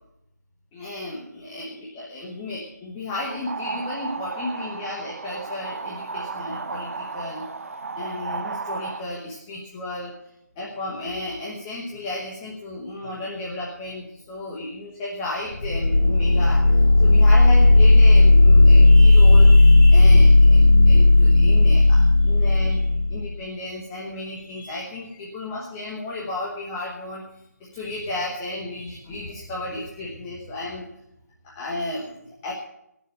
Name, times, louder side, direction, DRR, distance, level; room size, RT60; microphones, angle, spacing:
voice 1, 0.7-7.5 8.0-10.1 10.6-16.7 17.0-30.9 31.4-32.5, left 2 dB, 10° left, -4 dB, 1.1 m, -33 dB
sound 1, 3.1-9.0, right 4 dB, 50° right, 0.9 m, -34 dB
sound 2, 15.5-23.3, left 2 dB, 85° left, 1.1 m, -13 dB
16.5 x 7.1 x 7.6 m, 0.82 s
figure-of-eight pair, 170°, 9 cm